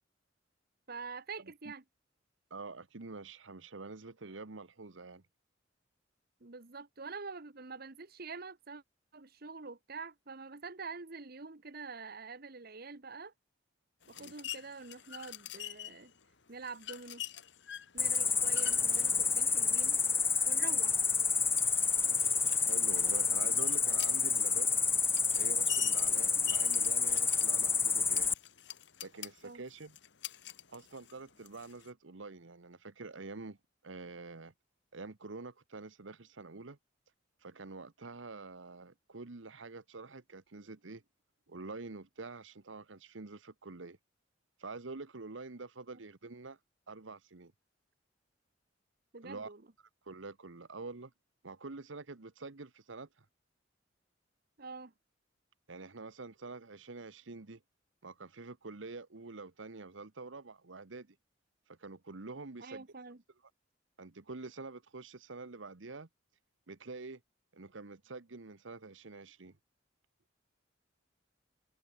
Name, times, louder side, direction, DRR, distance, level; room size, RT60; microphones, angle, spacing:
voice 1, 0.9-1.8 6.4-8.8 9.1-13.3 14.1-16.1 16.5-17.2 17.9-20.0 20.4-21.0 29.4-29.6 49.1-49.6 54.6-54.9 62.6-63.2, right 4 dB, 55° right, 1.4 m, -46 dB
voice 2, 2.5-5.2 14.1-14.3 22.1-22.2 22.7-24.7 25.4-28.3 29.0-30.0 30.7-33.6 33.8-34.5 34.9-36.8 37.4-41.0 41.5-44.0 44.6-46.6 46.9-47.5 49.2-49.5 50.0-51.1 51.4-53.2 55.7-57.6 58.0-61.2 61.7-62.8 64.0-66.1 66.7-67.2 67.5-69.6, right 3 dB, 85° right, 1.2 m, -47 dB
sound 1, 14.0-31.9, left 12 dB, 65° left, 1.6 m, -48 dB
Cricket, 18.0-28.3, left 5 dB, 15° left, 0.4 m, -29 dB
head